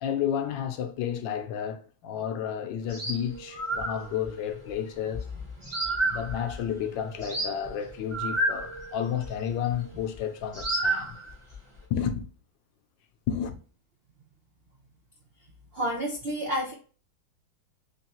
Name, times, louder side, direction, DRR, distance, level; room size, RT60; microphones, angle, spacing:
voice 1, 0.0-5.2 6.1-11.2 11.9-12.3 13.3-13.6, left 9 dB, 75° left, 1.2 m, -31 dB
sound 1, 2.8-10.2 10.5-11.8, right 1 dB, 20° right, 0.8 m, -32 dB
voice 2, 15.7-16.7, equal, 85° right, 0.5 m, -29 dB
3.9 x 3.1 x 2.9 m
omnidirectional pair, 2.1 m